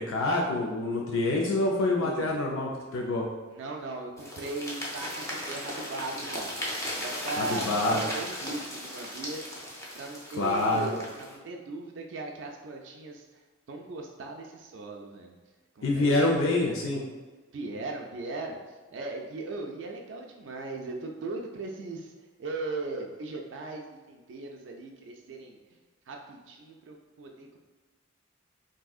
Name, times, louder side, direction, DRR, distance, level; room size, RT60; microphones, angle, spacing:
voice 1, 0.0-3.3 7.4-8.0 10.3-10.9 15.8-17.0, left 2 dB, 85° left, -1 dB, 0.4 m, -26 dB
voice 2, 2.0-2.3 3.5-6.5 7.0-9.5 9.9-13.2 13.7-15.4 15.8-16.3 17.5-18.6 18.9-22.1 22.4-25.6 26.1-27.6, right 3 dB, 65° right, 1 dB, 0.3 m, -38 dB
sound 1, 4.2-11.4, left 1 dB, 15° left, 0.6 m, -37 dB
3.5 x 2.6 x 2.3 m, 1.3 s
head